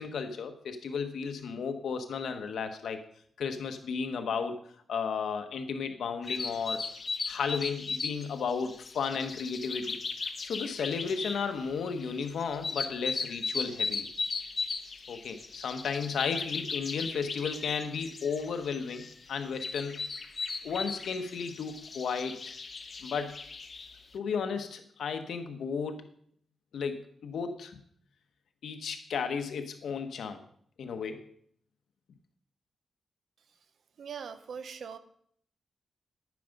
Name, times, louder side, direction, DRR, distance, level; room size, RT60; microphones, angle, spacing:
voice 1, 0.0-3.0 3.4-4.6 4.9-6.9 7.3-10.0 10.4-14.1 15.1-20.0 20.6-22.5 23.0-23.4 24.1-26.1 26.7-27.8 28.6-30.4 30.8-31.3, left 6 dB, 75° left, 7 dB, 1.1 m, -34 dB
sound 1, 6.2-24.0, left 4 dB, 35° left, 0.8 m, -37 dB
voice 2, 34.0-35.0, right 6 dB, 60° right, 12 dB, 0.7 m, -41 dB
10.0 x 9.4 x 5.3 m, 0.63 s
wide cardioid pair, 180°, 0 cm